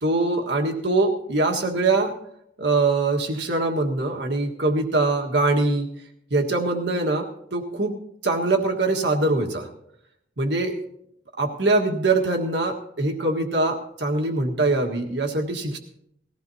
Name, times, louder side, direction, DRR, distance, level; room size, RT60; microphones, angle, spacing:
voice 1, 0.0-2.1 2.6-5.9 6.3-7.9 8.2-9.7 10.4-10.8 11.4-15.8, right 2 dB, 65° right, 2 dB, 1.6 m, -23 dB
20.0 x 15.0 x 2.8 m, 0.76 s
head